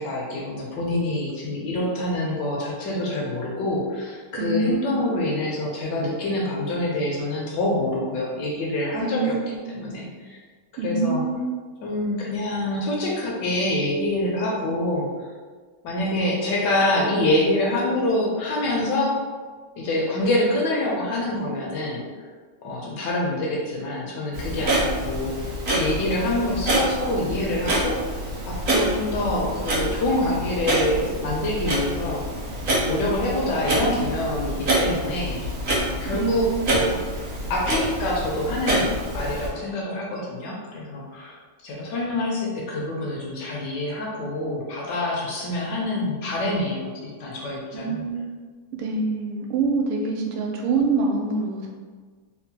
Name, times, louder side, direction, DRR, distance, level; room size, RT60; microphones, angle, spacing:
voice 1, 0.0-9.4 9.7-10.4 10.8-11.2 11.8-15.1 15.8-19.2 19.8-22.0 22.6-25.4 25.7-28.0 28.5-32.2 32.9-35.5 35.8-41.4 41.6-48.0, left 1 dB, 75° left, -3 dB, 1.0 m, -26 dB
voice 2, 4.3-4.9 8.9-9.7 10.8-11.6 36.1-36.7 47.7-48.4 48.8-51.7, right 4 dB, 85° right, 0 dB, 1.5 m, -26 dB
Clock, 24.3-39.5, right 1 dB, 60° right, 0.8 m, -27 dB
3.6 x 2.1 x 2.7 m, 1.5 s
omnidirectional pair, 2.3 m